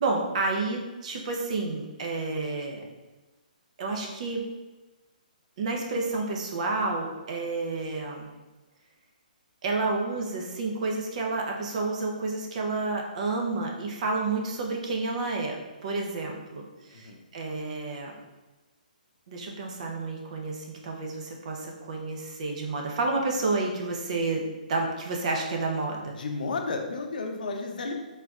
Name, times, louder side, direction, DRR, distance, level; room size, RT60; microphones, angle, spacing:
voice 1, 0.0-2.8 3.8-4.4 5.6-8.3 9.6-18.1 19.3-26.1, right 3 dB, 50° right, 1 dB, 0.8 m, -30 dB
voice 2, 26.2-28.0, left 3 dB, 75° left, 3 dB, 0.7 m, -32 dB
4.3 x 3.9 x 2.4 m, 1.2 s
hypercardioid pair, 150°, 5 cm